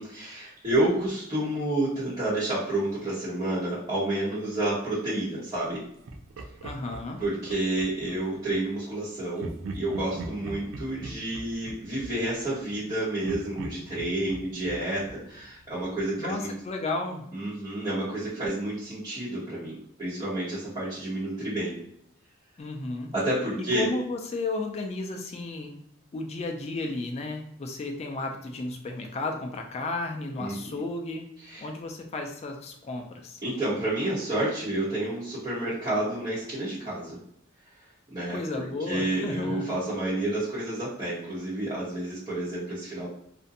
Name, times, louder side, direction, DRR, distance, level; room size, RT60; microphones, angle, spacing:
voice 1, 0.0-5.8 7.2-16.5 17.3-21.8 23.1-23.9 30.4-30.8 31.5-31.7 33.4-37.2 38.1-43.1, right 1 dB, 25° right, -11 dB, 0.9 m, -30 dB
Laughter, 6.1-8.2 9.4-12.9 13.2-16.0, right 2 dB, 70° right, 0.4 m, -41 dB
voice 2, 6.6-7.2 16.2-17.3 22.6-23.1 23.6-25.8 26.1-31.3 31.6-33.4 38.3-39.7, left 2 dB, 30° left, 3 dB, 0.3 m, -33 dB
2.5 x 2.1 x 2.7 m, 0.74 s
head